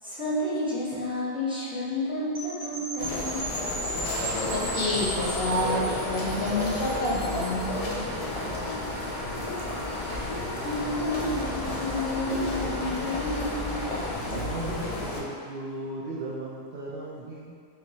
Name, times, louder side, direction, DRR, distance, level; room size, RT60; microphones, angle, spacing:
voice 1, 0.0-3.5 10.6-14.1, left 1 dB, 5° right, -9 dB, 0.7 m, -31 dB
sound 1, 2.3-7.6, right 1 dB, 30° right, 1.0 m, -36 dB
sound 2, 3.0-15.2, left 2 dB, 45° left, 0.5 m, -32 dB
sound 3, 4.3-14.1, equal, 85° right, 1.1 m, -38 dB
voice 2, 4.5-7.9, left 1 dB, 65° left, -4 dB, 0.9 m, -28 dB
voice 3, 14.3-17.5, right 2 dB, 60° right, -4 dB, 0.7 m, -36 dB
3.3 x 3.1 x 3.9 m, 2.2 s
omnidirectional pair, 1.1 m